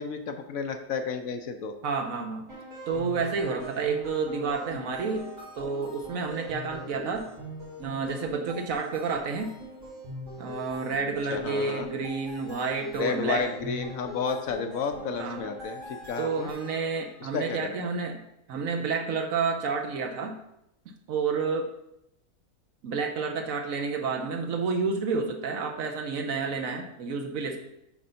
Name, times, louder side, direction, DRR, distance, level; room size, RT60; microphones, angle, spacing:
voice 1, 0.0-1.7 11.3-11.9 12.9-16.5 17.2-17.8, left 5 dB, 65° left, 7 dB, 1.0 m, -32 dB
voice 2, 1.8-2.5 2.9-7.3 7.8-9.6 10.4-13.5 15.2-15.4 16.2-18.2 18.5-20.4 20.9-21.7 22.8-27.6, right 4 dB, 65° right, 4 dB, 1.1 m, -30 dB
sound 1, 2.5-17.2, equal, 90° right, 3.6 m, -42 dB
7.8 x 3.9 x 5.5 m, 0.83 s
omnidirectional pair, 1.7 m